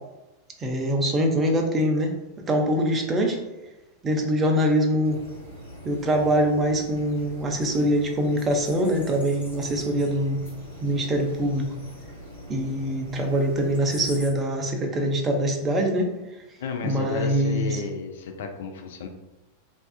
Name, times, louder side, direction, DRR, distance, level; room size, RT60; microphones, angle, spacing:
voice 1, 0.6-2.1 2.5-3.4 4.0-5.2 5.8-10.4 10.8-11.7 12.5-16.1 16.8-17.8, equal, 20° right, 2 dB, 0.4 m, -23 dB
sound 1, 5.0-14.3, equal, 80° left, 0.8 m, -42 dB
voice 2, 16.6-19.1, left 5 dB, 60° left, 5 dB, 0.3 m, -32 dB
2.4 x 2.3 x 2.3 m, 1.1 s
figure-of-eight pair, 90°, 0 cm